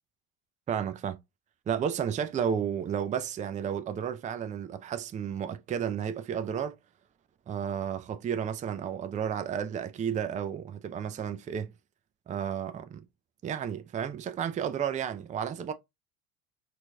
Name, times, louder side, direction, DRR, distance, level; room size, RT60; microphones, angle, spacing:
voice 1, 0.7-1.2 1.7-6.8 7.5-11.7 12.3-13.1 13.4-15.7, right 8 dB, 20° right, 0.4 m, -32 dB
4.4 x 2.6 x 2.3 m
hypercardioid pair, 65°, 40 cm